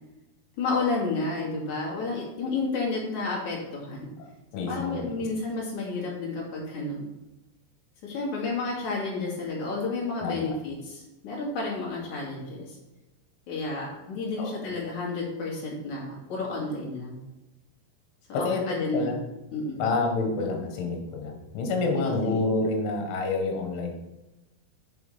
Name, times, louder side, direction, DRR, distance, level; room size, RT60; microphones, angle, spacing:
voice 1, 0.6-4.1 4.6-7.1 8.0-12.8 13.5-17.2 18.3-19.1 19.5-19.8 21.9-22.4, left 3 dB, 45° left, -3 dB, 3.4 m, -31 dB
voice 2, 4.5-5.2 10.2-10.6 14.4-14.7 18.3-18.6 18.9-19.2 19.8-24.0, left 3 dB, 75° left, 3 dB, 4.0 m, -28 dB
7.5 x 6.9 x 5.7 m, 0.99 s
omnidirectional pair, 5.6 m